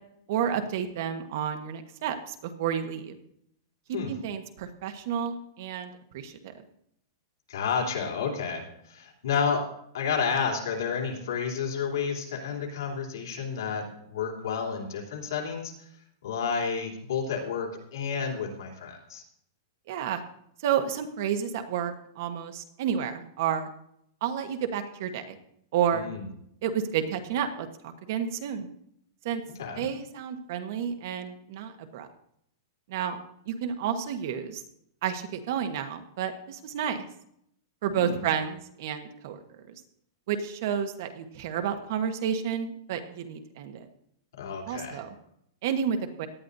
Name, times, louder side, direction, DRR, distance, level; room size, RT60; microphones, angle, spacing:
voice 1, 0.3-3.2 3.9-6.4 19.9-20.2 20.6-23.7 24.2-25.3 25.7-26.1 26.6-28.7 29.2-29.4 29.8-32.1 32.9-33.2 33.5-34.6 35.0-37.0 37.8-39.4 40.3-43.9 44.7-45.1 45.6-46.3, right 8 dB, 45° right, 7 dB, 1.2 m, -30 dB
voice 2, 7.5-9.7 9.9-15.7 16.2-19.2 25.9-26.3 29.6-29.9 37.9-38.3 44.4-45.0, left 6 dB, 90° left, 0 dB, 3.2 m, -31 dB
18.0 x 11.0 x 2.7 m, 0.72 s
supercardioid pair, 175°, 2 cm